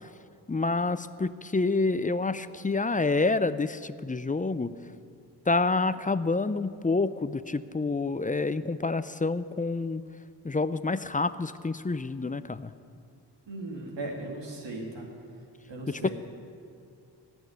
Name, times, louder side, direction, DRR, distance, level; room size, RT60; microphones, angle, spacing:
voice 1, 0.5-4.7 5.5-10.0 10.4-12.7 15.9-16.1, left 3 dB, 20° left, 14 dB, 0.5 m, -28 dB
voice 2, 13.5-15.1 15.7-16.1, right 2 dB, 85° right, -1 dB, 2.2 m, -37 dB
16.0 x 6.3 x 9.3 m, 2.5 s
cardioid pair, 45°, 42 cm